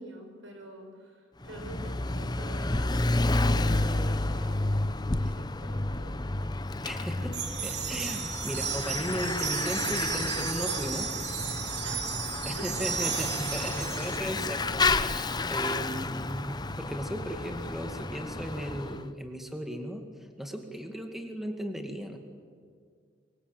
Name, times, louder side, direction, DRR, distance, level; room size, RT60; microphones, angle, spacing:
voice 1, 0.0-6.2 11.8-12.1 12.5-12.7, right 1 dB, 85° right, 3 dB, 6.0 m, -46 dB
Bicycle / Mechanisms, 1.4-19.0, left 2 dB, 20° left, 0.7 m, -31 dB
voice 2, 6.8-11.1 12.4-20.1 20.4-22.2, equal, ahead, 4 dB, 2.1 m, -36 dB
sound 1, 7.3-14.2, right 8 dB, 65° right, 2.7 m, -34 dB
24.5 x 23.5 x 9.0 m, 2.1 s
head